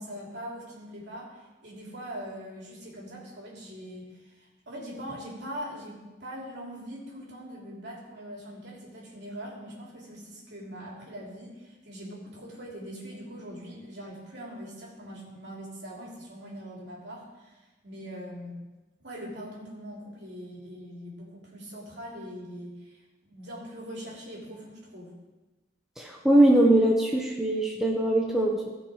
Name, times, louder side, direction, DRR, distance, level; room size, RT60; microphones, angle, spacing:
voice 1, 0.0-17.6 17.8-18.6 19.0-25.1, equal, 55° right, -3 dB, 3.1 m, -42 dB
voice 2, 26.0-28.7, right 1 dB, ahead, -2 dB, 1.0 m, -21 dB
16.5 x 5.7 x 4.9 m, 1.1 s
head